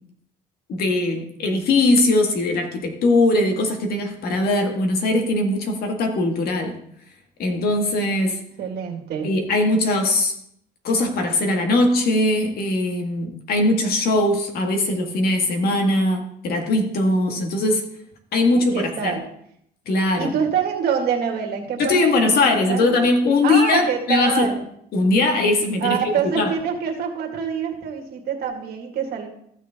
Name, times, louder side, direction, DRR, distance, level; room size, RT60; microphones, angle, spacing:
voice 1, 0.7-6.7 7.4-8.4 9.2-10.3 10.8-17.9 18.3-19.2 19.9-20.3 21.8-24.5 24.9-26.5, left 2 dB, 65° left, 3 dB, 1.9 m, -20 dB
voice 2, 8.6-9.3 18.5-19.2 20.2-23.1 23.4-24.6 25.8-29.3, right 7 dB, 70° right, 3 dB, 2.0 m, -25 dB
14.0 x 6.5 x 3.7 m, 0.71 s
cardioid pair, 110°, 17 cm